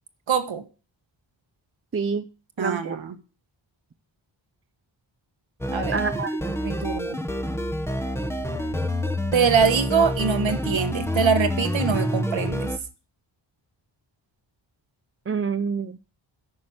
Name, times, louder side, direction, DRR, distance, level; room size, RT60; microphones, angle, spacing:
voice 1, 0.3-0.6 2.6-3.1 5.7-6.0 6.6-7.2 9.3-12.7, right 6 dB, 70° right, 6 dB, 1.4 m, -23 dB
voice 2, 1.9-2.3 2.6-3.0 5.9-6.5 15.3-16.0, right 5 dB, 30° right, 9 dB, 0.5 m, -27 dB
sound 1, 5.6-12.8, left 1 dB, 5° left, 1.0 m, -27 dB
9.6 x 6.1 x 7.7 m, 0.34 s
wide cardioid pair, 130°, 47 cm